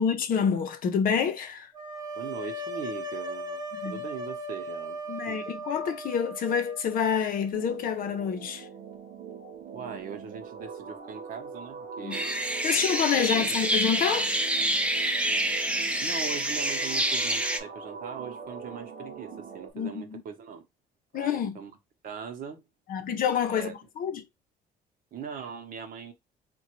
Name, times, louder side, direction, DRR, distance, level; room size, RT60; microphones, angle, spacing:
voice 1, 0.0-1.7 3.7-4.0 5.1-8.7 12.0-12.2 12.6-14.3 19.7-20.2 21.1-21.6 22.9-24.2, left 7 dB, 55° left, 0.7 m, -28 dB
sound 1, 1.7-7.6, right 1 dB, 25° right, 0.8 m, -38 dB
voice 2, 2.1-5.4 9.7-12.4 12.7-12.9 13.2-13.6 16.0-20.7 21.1-21.8 22.0-22.6 23.5-23.7 25.1-26.1, right 7 dB, 55° right, 0.9 m, -40 dB
sound 2, 7.5-19.7, right 6 dB, 85° right, 0.8 m, -42 dB
sound 3, 12.1-17.6, right 1 dB, 5° right, 0.4 m, -27 dB
3.7 x 2.3 x 3.0 m
cardioid pair, 110°, 17 cm